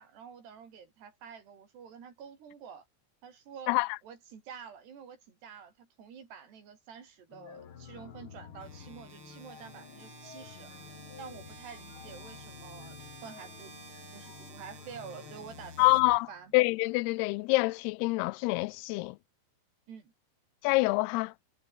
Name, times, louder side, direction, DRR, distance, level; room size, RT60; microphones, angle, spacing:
voice 1, 0.0-2.9 3.2-3.7 4.0-10.7 11.2-13.8 14.1-16.5 19.9-20.1, right 7 dB, 85° right, 6.2 m, -48 dB
sound 1, 7.3-16.2, left 7 dB, 45° left, 1.9 m, -50 dB
sound 2, 8.6-16.6, right 5 dB, 40° right, 4.9 m, -52 dB
voice 2, 15.8-16.3 16.5-19.2 20.6-21.3, left 23 dB, 85° left, 2.5 m, -26 dB
omnidirectional pair, 4.7 m